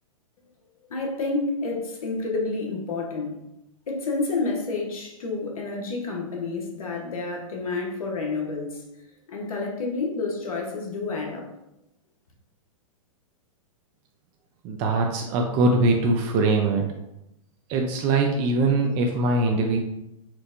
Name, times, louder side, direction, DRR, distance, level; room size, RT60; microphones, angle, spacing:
voice 1, 0.9-3.4 3.9-8.8 9.3-11.5, left 3 dB, 85° left, 0 dB, 0.9 m, -29 dB
voice 2, 14.6-16.8 17.7-19.8, right 2 dB, 35° right, 1 dB, 0.4 m, -22 dB
4.4 x 2.1 x 2.5 m, 0.85 s
hypercardioid pair, 125°, 18 cm